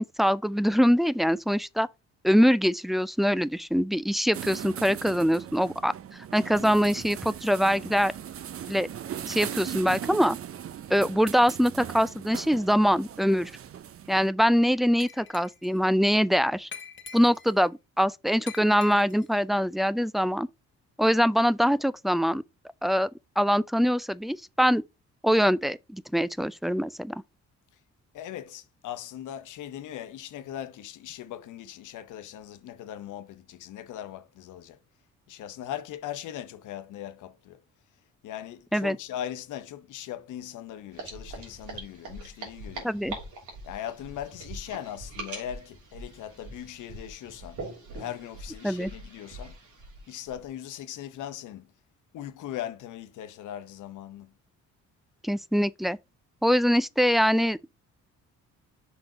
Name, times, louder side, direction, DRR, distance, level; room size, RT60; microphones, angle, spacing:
voice 1, 0.0-1.9 2.2-5.9 6.3-8.1 8.7-8.9 9.2-10.4 10.9-13.5 14.1-16.7 17.1-20.5 21.0-22.4 22.8-23.1 23.4-24.8 25.2-27.2 38.7-39.0 42.8-43.2 48.6-48.9 55.2-56.0 56.4-57.7, equal, ahead, 0.3 m, -23 dB
sound 1, 4.3-14.3, right 9 dB, 50° right, 0.6 m, -39 dB
Glass, 15.0-15.8 16.7-17.6 18.5-19.3, left 6 dB, 40° left, 1.0 m, -45 dB
voice 2, 28.1-34.8 35.3-37.6 38.2-42.9 43.6-47.6 47.9-49.6 50.1-51.7 52.1-54.3, left 11 dB, 80° left, 0.9 m, -39 dB
sound 2, 40.9-50.5, right 2 dB, 80° right, 3.0 m, -42 dB
6.0 x 3.8 x 5.0 m
cardioid pair, 90°, 30 cm